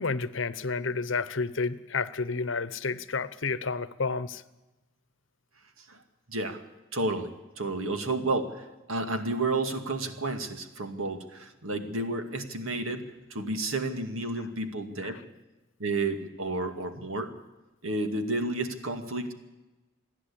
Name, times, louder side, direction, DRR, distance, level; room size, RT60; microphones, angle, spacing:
voice 1, 0.0-4.4 15.0-15.2, left 4 dB, 65° left, 15 dB, 0.9 m, -30 dB
voice 2, 6.3-6.6 6.9-7.3 7.6-15.2 15.8-17.3 17.8-19.3, right 2 dB, 85° right, 6 dB, 2.2 m, -31 dB
28.0 x 11.0 x 8.7 m, 1.1 s
head